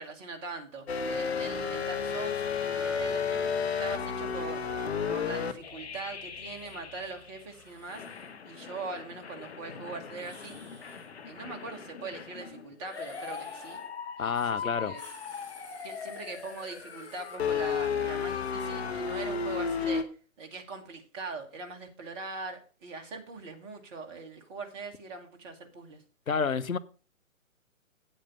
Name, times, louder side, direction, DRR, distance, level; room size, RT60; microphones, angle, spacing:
voice 1, 0.0-3.4 3.8-4.6 5.1-8.0 8.4-10.6 11.2-13.8 14.2-15.0 15.8-20.0 20.4-26.0, right 3 dB, 20° right, 1.3 m, -41 dB
sound 1, 0.9-7.4 7.9-20.0, left 6 dB, 50° left, 1.2 m, -34 dB
sound 2, 6.5-6.8 7.4-8.3 10.1-11.1 12.8-13.9 14.3-14.6 14.8-17.4, left 2 dB, 5° left, 1.5 m, -53 dB
voice 2, 14.2-15.0 26.3-26.8, left 6 dB, 75° left, 0.9 m, -29 dB
8.7 x 7.9 x 5.3 m
figure-of-eight pair, 135°, 41 cm